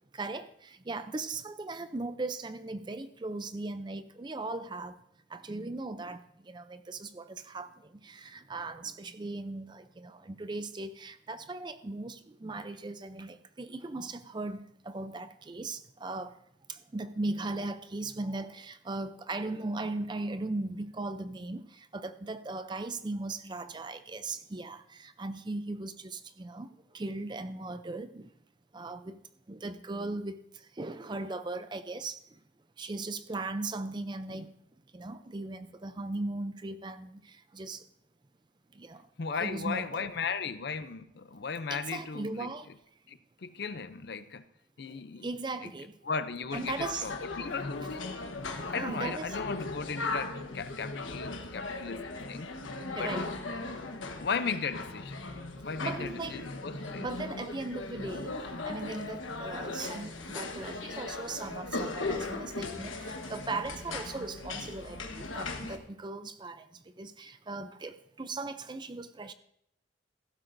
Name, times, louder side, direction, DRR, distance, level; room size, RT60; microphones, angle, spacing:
voice 1, 0.1-4.9 5.3-6.2 6.5-7.7 8.0-16.3 16.7-26.7 26.9-28.3 28.7-29.2 29.5-30.4 30.8-32.2 32.8-34.5 34.9-37.8 38.8-39.0 39.4-40.1 41.7-42.7 45.2-45.9 46.5-47.1 47.4-47.6 48.7-49.4 52.9-53.3 55.8-56.4 57.0-58.3 58.6-66.7 67.0-69.3, right 2 dB, 25° right, 0.4 m, -38 dB
voice 2, 39.2-42.5 43.1-44.4 44.8-45.3 45.6-45.7 46.0-48.1 48.7-52.5 52.9-53.3 54.0-55.2 55.6-57.1, left 5 dB, 55° left, 0.5 m, -36 dB
sound 1, 46.5-65.8, left 3 dB, 80° left, 1.2 m, -38 dB
15.0 x 12.0 x 2.6 m
head